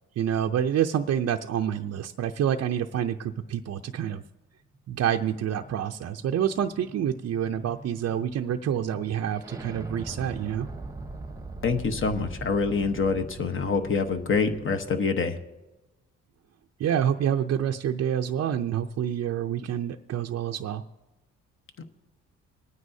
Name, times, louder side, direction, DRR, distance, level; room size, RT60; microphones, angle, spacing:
voice 1, 0.2-4.2 4.9-10.7 16.8-20.8, right 9 dB, 55° right, 4 dB, 0.5 m, -27 dB
sound 1, 4.7-14.9, right 2 dB, 10° right, 1.0 m, -42 dB
voice 2, 11.6-15.4 21.8-21.9, left 4 dB, 40° left, 7 dB, 1.1 m, -26 dB
25.5 x 9.5 x 2.7 m, 1.0 s
cardioid pair, 90°, 30 cm